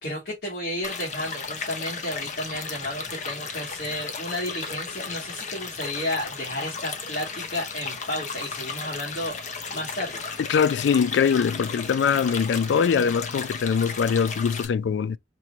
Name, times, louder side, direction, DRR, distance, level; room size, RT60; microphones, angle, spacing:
voice 1, 0.0-9.4 9.7-10.2, left 1 dB, 60° left, 2.5 m, -32 dB
sound 1, 0.8-14.6, left 5 dB, 40° left, 0.8 m, -35 dB
voice 2, 10.5-15.2, left 6 dB, 80° left, 0.3 m, -22 dB
4.6 x 2.9 x 2.8 m
head